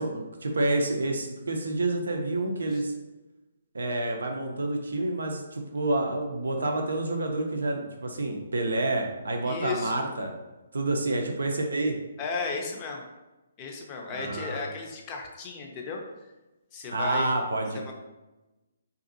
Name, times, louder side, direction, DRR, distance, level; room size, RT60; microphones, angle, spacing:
voice 1, 0.0-2.9 3.7-10.3 10.7-12.0 14.1-14.7 16.9-17.9, right 2 dB, 80° right, 3 dB, 0.5 m, -28 dB
voice 2, 9.4-10.0 12.2-13.0 13.6-16.0 16.7-17.3 17.8-17.9, left 4 dB, 30° left, 1 dB, 0.5 m, -34 dB
2.7 x 2.5 x 2.5 m, 1.1 s
hypercardioid pair, 145°, 0 cm